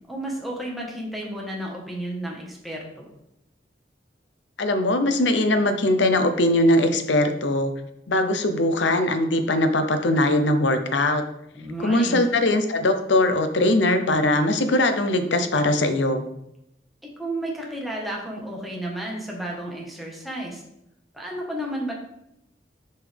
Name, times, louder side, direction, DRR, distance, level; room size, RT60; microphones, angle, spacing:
voice 1, 0.1-3.1 11.5-12.2 17.2-20.6 21.1-21.9, right 1 dB, ahead, -2 dB, 1.5 m, -32 dB
voice 2, 4.6-7.7 8.1-11.2 11.8-16.2, left 1 dB, 85° left, 8 dB, 0.8 m, -21 dB
7.1 x 5.5 x 3.5 m, 0.80 s
head